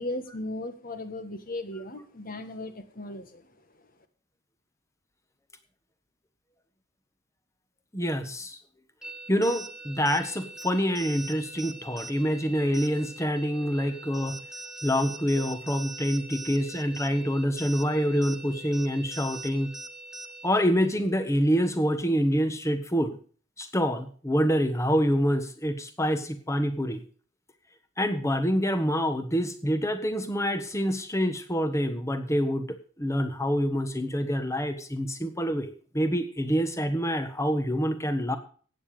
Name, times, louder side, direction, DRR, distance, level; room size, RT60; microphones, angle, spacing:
voice 1, 0.0-3.4, left 1 dB, 45° left, 9 dB, 1.7 m, -36 dB
voice 2, 7.9-8.6 9.3-14.4 14.8-19.7 20.4-23.2 23.6-27.0 28.0-38.4, equal, 15° left, 9 dB, 1.4 m, -26 dB
sound 1, 9.0-20.6, right 2 dB, 5° right, 1.3 m, -42 dB
15.0 x 9.1 x 5.0 m, 0.42 s
head